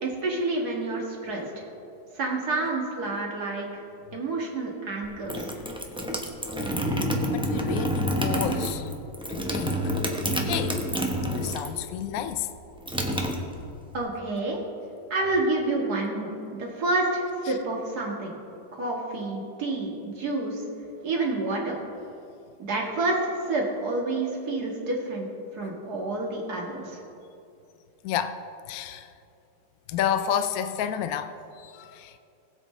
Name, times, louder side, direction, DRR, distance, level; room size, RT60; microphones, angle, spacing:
voice 1, 0.0-1.6 2.1-3.7 4.1-5.5 13.9-14.6 15.1-18.3 18.7-20.6 21.0-21.8 22.7-25.3 25.5-27.0, right 2 dB, 60° right, -1 dB, 2.2 m, -29 dB
sound 1, 5.0-11.8 12.1-14.0, equal, 5° right, 0.5 m, -28 dB
voice 2, 7.3-8.9 9.3-9.8 10.4-10.8 11.3-12.5 17.5-17.6 25.6-25.7 28.0-28.4 28.7-29.1 29.9-32.2, left 9 dB, 70° left, 9 dB, 0.9 m, -30 dB
20.0 x 7.9 x 3.2 m, 2.7 s
omnidirectional pair, 1.9 m